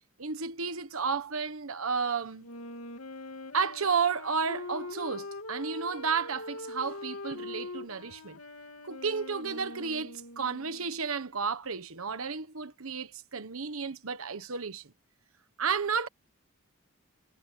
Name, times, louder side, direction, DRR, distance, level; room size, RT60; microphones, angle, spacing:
voice 1, 0.2-2.5 3.5-8.4 8.8-14.9 15.6-16.1, right 5 dB, 85° right, 1.2 m, -32 dB
Wind instrument woodwind instrument, 2.4-11.0, left 2 dB, 90° left, 2.9 m, -43 dB
head